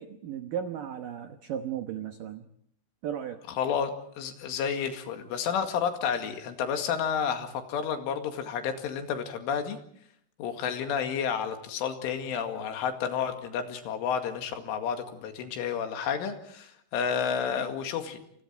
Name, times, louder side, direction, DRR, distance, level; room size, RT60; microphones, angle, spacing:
voice 1, 0.0-2.5 3.0-3.4, right 9 dB, 90° right, 7 dB, 1.9 m, -35 dB
voice 2, 3.6-3.9 4.2-9.8 10.4-18.2, left 7 dB, 80° left, 6 dB, 4.6 m, -31 dB
29.0 x 27.5 x 4.6 m, 0.68 s
omnidirectional pair, 5.6 m